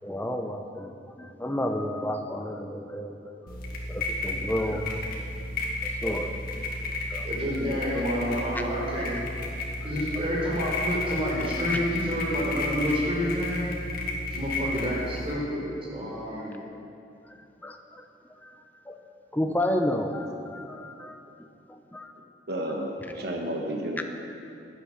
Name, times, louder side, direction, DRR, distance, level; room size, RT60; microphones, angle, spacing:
voice 1, 0.0-5.1 5.8-6.4 7.1-7.3 7.6-7.8 8.5-8.7 9.8-10.2 11.7-11.8 17.2-19.0 19.3-22.1 24.0-24.1, left 1 dB, 10° left, 5 dB, 0.8 m, -32 dB
sound 1, 3.5-15.3, left 2 dB, 55° left, 2.1 m, -32 dB
voice 2, 7.2-9.1 9.8-13.6 14.3-15.6 15.9-16.7, equal, 35° right, -5 dB, 4.5 m, -29 dB
voice 3, 22.5-24.0, right 1 dB, 65° right, 1 dB, 1.4 m, -32 dB
16.0 x 10.0 x 6.5 m, 2.6 s
head